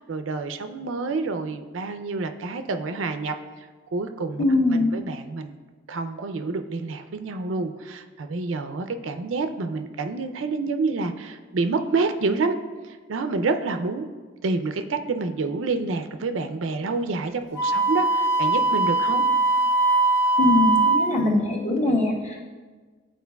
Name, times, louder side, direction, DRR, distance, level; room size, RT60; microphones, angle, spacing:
voice 1, 0.0-3.3 3.9-4.4 4.7-5.5 5.9-12.6 12.8-14.1 14.4-19.2, right 3 dB, 80° right, 8 dB, 0.5 m, -28 dB
voice 2, 4.4-4.9 20.4-22.5, left 2 dB, 35° left, -3 dB, 1.3 m, -22 dB
Wind instrument woodwind instrument, 17.6-21.1, right 2 dB, 65° left, 0.8 m, -21 dB
11.5 x 4.3 x 2.3 m, 1.4 s
head